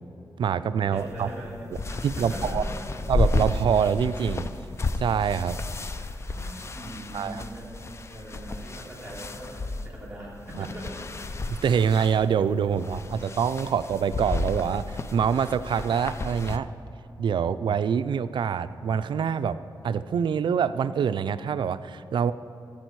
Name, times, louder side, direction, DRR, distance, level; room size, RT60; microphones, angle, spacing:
voice 1, 0.4-1.3 2.0-2.6 3.1-4.5 5.0-5.6 7.1-7.4 10.6-10.7 11.5-14.8 15.1-16.7 17.2-19.6 19.8-22.3, right 7 dB, 65° right, 13 dB, 0.4 m, -25 dB
voice 2, 0.9-2.9 6.0-7.7 8.1-11.0, right 1 dB, 10° right, -5 dB, 3.4 m, -41 dB
sound 1, 1.0-16.6, left 2 dB, 30° left, 0.4 m, -32 dB
14.5 x 8.7 x 4.6 m, 2.6 s
wide cardioid pair, 125°, 9 cm